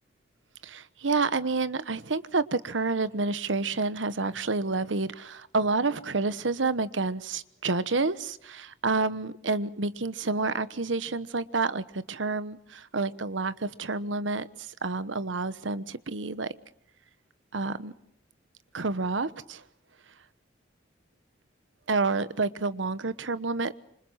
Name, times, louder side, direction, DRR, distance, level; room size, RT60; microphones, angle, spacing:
voice 1, 0.6-14.5 14.8-16.5 17.5-17.9 18.7-19.6 21.9-23.8, right 3 dB, 85° right, 15 dB, 1.1 m, -29 dB
27.0 x 25.5 x 5.8 m, 0.74 s
head